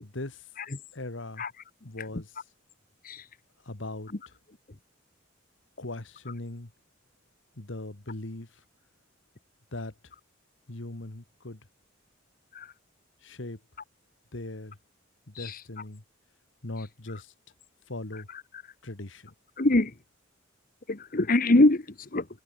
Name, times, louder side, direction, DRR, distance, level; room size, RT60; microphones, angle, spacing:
voice 1, 0.0-0.5 0.9-1.4 1.8-2.3 3.6-4.4 5.8-6.7 7.6-8.6 9.7-10.1 10.7-11.6 13.2-13.6 14.3-14.8 15.3-16.0 16.6-17.3 17.9-18.3 18.8-19.3, left 2 dB, 65° left, 1.8 m, -39 dB
voice 2, 19.6-19.9 20.9-22.3, left 2 dB, 45° left, 1.3 m, -24 dB
head